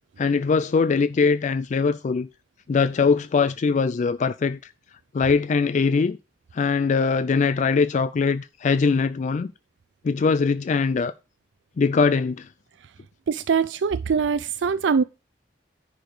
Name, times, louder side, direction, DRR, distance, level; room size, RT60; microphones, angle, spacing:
voice 1, 0.2-2.3 2.7-4.6 5.1-6.2 6.5-9.5 10.0-11.1 11.8-12.5, left 5 dB, 40° left, 0.3 m, -21 dB
voice 2, 13.3-15.0, right 6 dB, 85° right, 0.4 m, -22 dB
10.0 x 5.0 x 4.8 m
head